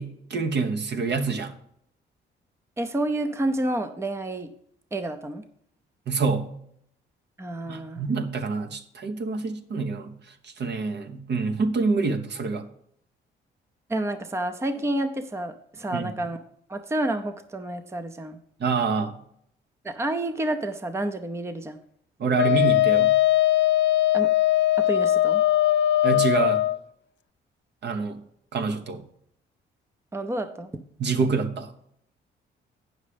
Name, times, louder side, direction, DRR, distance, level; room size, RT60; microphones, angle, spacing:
voice 1, 0.0-1.5 6.1-6.4 7.7-10.1 10.4-12.6 15.9-16.1 18.6-19.2 22.2-23.1 26.0-26.6 27.8-28.2 28.5-29.0 31.0-31.7, right 4 dB, 60° right, 7 dB, 1.2 m, -26 dB
voice 2, 2.8-4.5 4.9-5.4 7.4-8.0 13.9-16.4 16.7-18.4 19.8-21.8 24.1-24.3 24.8-25.4 30.1-30.7, right 1 dB, 15° right, 9 dB, 0.7 m, -29 dB
Wind instrument woodwind instrument, 22.4-26.8, left 14 dB, 65° left, 0.5 m, -20 dB
8.6 x 6.4 x 5.2 m, 0.68 s
cardioid pair, 90°, 20 cm